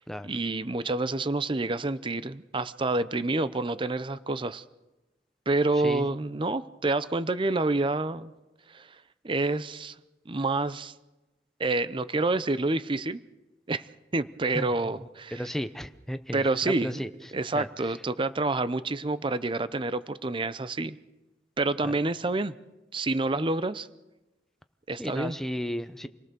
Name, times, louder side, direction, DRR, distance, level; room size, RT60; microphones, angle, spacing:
voice 1, 0.2-4.6 5.5-8.3 8.7-8.9 9.2-9.9 10.3-10.9 11.6-13.2 13.7-13.9 14.1-15.4 16.3-17.0 17.3-21.0 21.6-22.5 22.9-23.9 24.9-25.4, right 2 dB, 30° right, 14 dB, 0.7 m, -28 dB
voice 2, 15.3-17.1 17.5-17.7 21.8-21.9 25.0-26.1, equal, ahead, 9 dB, 0.9 m, -33 dB
28.0 x 18.5 x 6.9 m, 1.1 s
head